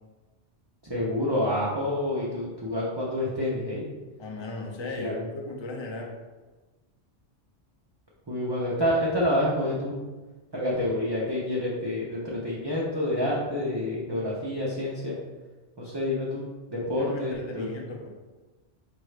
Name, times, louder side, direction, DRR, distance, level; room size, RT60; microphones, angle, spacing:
voice 1, 0.8-3.9 5.0-5.2 8.3-10.0 10.5-15.2 15.8-17.7, left 1 dB, 30° right, -6 dB, 0.5 m, -28 dB
voice 2, 4.2-6.2 17.0-18.2, left 2 dB, 45° left, 1 dB, 0.4 m, -37 dB
4.7 x 2.6 x 3.2 m, 1.2 s
omnidirectional pair, 1.2 m